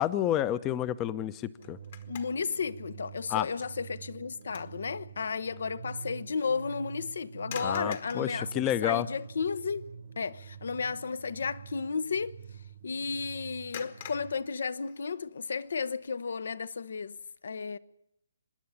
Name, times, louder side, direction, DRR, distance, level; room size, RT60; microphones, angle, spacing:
voice 1, 0.0-1.8 3.3-3.5 7.6-9.1, left 12 dB, 20° left, 0.7 m, -29 dB
sound 1, 1.4-2.6 3.0-3.2 3.8-4.8 5.2-5.3 7.4-8.3 9.2-9.3 9.6-10.0 10.2-10.5 13.7-15.3, left 9 dB, 45° left, 1.5 m, -46 dB
sound 2, 1.6-14.3, right 6 dB, 60° right, 1.4 m, -47 dB
voice 2, 2.1-9.8 10.2-12.4 12.8-17.2 17.4-17.8, left 5 dB, 65° left, 0.8 m, -33 dB
25.5 x 10.5 x 9.9 m
figure-of-eight pair, 145°, 0 cm